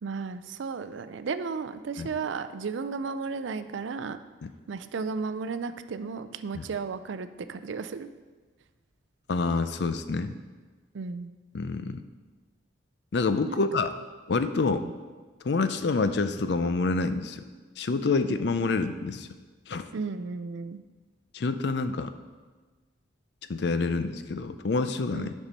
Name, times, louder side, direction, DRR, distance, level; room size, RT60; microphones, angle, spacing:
voice 1, 0.0-4.2 4.7-8.1 10.9-11.3 13.5-13.6 14.7-14.9 19.9-20.8 25.1-25.3, right 5 dB, 70° right, 11 dB, 0.4 m, -34 dB
voice 2, 9.3-10.3 11.5-12.0 13.1-13.9 14.3-14.8 15.4-17.4 17.8-19.3 19.7-19.8 21.3-22.1 23.5-25.3, left 3 dB, 55° left, 10 dB, 0.4 m, -27 dB
7.2 x 5.5 x 5.3 m, 1.4 s
head